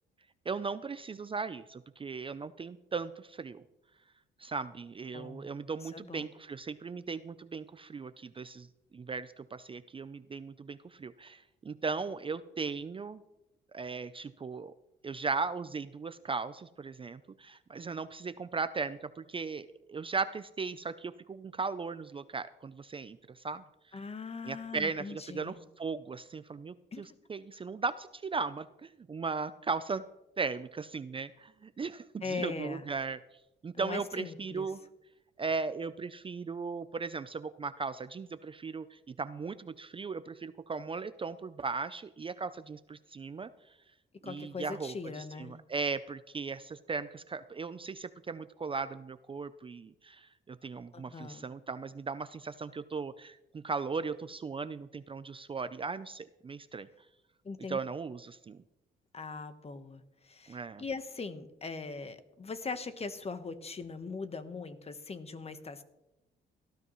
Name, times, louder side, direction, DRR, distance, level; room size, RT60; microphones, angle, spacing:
voice 1, 0.5-3.6 4.4-8.7 8.9-13.2 13.7-14.7 15.0-23.6 24.5-30.0 30.4-33.2 33.6-34.8 35.4-43.5 44.2-56.9 57.7-58.6 60.5-60.8, right 4 dB, 25° right, 13 dB, 0.5 m, -37 dB
voice 2, 5.1-5.5 5.8-6.3 23.9-25.6 26.9-27.0 32.2-32.9 33.7-34.7 44.2-45.6 50.9-51.5 57.4-57.8 59.1-65.8, left 4 dB, 30° left, 10 dB, 1.1 m, -40 dB
18.0 x 12.5 x 3.1 m, 0.92 s
cardioid pair, 90°, 20 cm